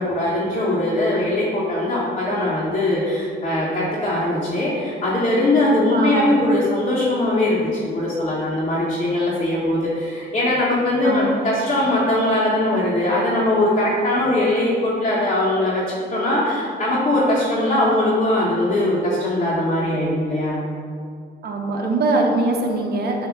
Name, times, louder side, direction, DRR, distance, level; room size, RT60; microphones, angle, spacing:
voice 1, 0.0-15.8 16.1-20.6, left 1 dB, 30° left, -8 dB, 1.4 m, -21 dB
voice 2, 5.9-6.5 11.0-11.5 21.4-23.3, right 2 dB, 55° right, 1 dB, 1.1 m, -22 dB
7.7 x 3.0 x 6.0 m, 2.3 s
cardioid pair, 90°, 20 cm